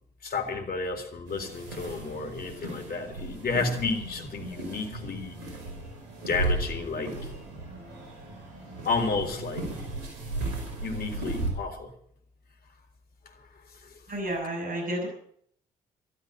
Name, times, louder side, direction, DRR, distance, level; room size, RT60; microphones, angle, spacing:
voice 1, 0.2-5.4 6.3-7.2 8.8-9.7 10.8-11.9 13.8-13.9, left 4 dB, 50° left, 4 dB, 3.7 m, -31 dB
sound 1, 1.3-11.5, right 2 dB, 80° right, 5.1 m, -35 dB
voice 2, 14.1-15.1, right 1 dB, 45° right, 0 dB, 6.9 m, -31 dB
13.0 x 12.5 x 7.8 m, 0.64 s
figure-of-eight pair, 40°, 21 cm